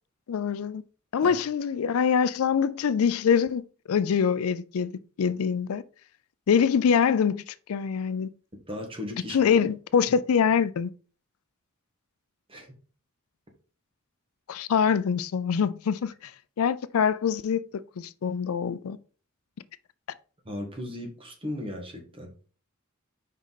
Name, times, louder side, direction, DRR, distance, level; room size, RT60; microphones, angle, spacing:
voice 1, 0.3-0.8 1.1-3.6 3.9-4.9 5.2-5.8 6.5-8.3 9.3-10.9 14.5-16.3 16.6-19.0, left 7 dB, 85° left, 0.4 m, -24 dB
voice 2, 8.7-9.5 12.5-12.7 20.4-22.3, left 1 dB, 25° right, 1.6 m, -36 dB
5.3 x 5.1 x 4.0 m
head